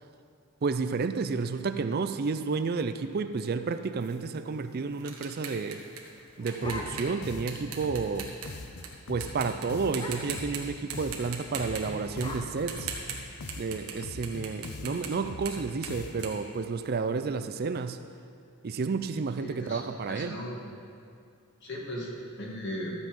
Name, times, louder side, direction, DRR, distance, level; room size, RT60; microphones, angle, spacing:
voice 1, 0.6-5.8 6.4-8.3 9.1-12.9 13.6-18.0 18.6-20.3, right 4 dB, 45° right, 10 dB, 0.4 m, -31 dB
sound 1, 4.0-8.9 9.2-9.7 9.9-10.6 10.9-14.0 14.2-17.2, right 7 dB, 70° right, 1.4 m, -40 dB
sound 2, 6.0-7.3 7.7-7.8 8.1-8.4 8.7-8.9 9.2-9.4 9.9-10.5 11.4-13.5, left 2 dB, 20° left, 0.9 m, -43 dB
sound 3, 6.6-16.5, left 2 dB, 85° left, 0.7 m, -43 dB
voice 2, 19.4-20.7 21.6-22.1 22.4-22.9, equal, 50° left, -2 dB, 2.1 m, -38 dB
13.0 x 8.1 x 5.3 m, 2.3 s
head